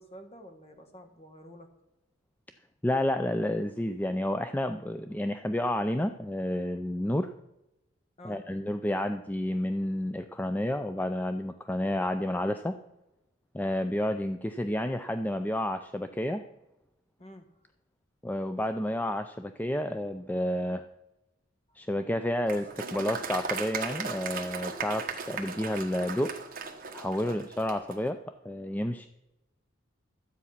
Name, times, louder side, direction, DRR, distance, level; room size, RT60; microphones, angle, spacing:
voice 1, 0.0-1.7 8.2-8.4 17.2-17.5 27.3-27.4, left 1 dB, 30° left, 6 dB, 1.6 m, -49 dB
voice 2, 2.8-7.3 8.2-12.8 13.5-16.4 18.2-20.8 21.8-26.3 26.9-28.2 28.4-29.1, left 1 dB, 10° left, 8 dB, 0.4 m, -30 dB
Applause, 22.5-28.0, right 5 dB, 45° right, 1.2 m, -37 dB
12.5 x 8.3 x 5.8 m, 0.93 s
head